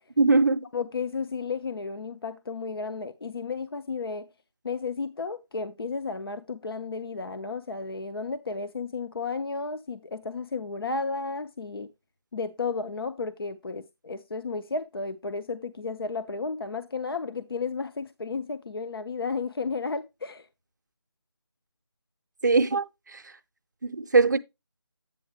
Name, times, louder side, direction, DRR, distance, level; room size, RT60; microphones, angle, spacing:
voice 1, 0.2-0.7 22.4-22.8 23.1-23.2 23.8-24.4, right 3 dB, 45° right, 0.5 m, -21 dB
voice 2, 0.7-4.3 4.6-11.9 12.3-20.5, left 4 dB, 60° left, 0.6 m, -33 dB
8.5 x 6.5 x 3.0 m
figure-of-eight pair, 170°, 14 cm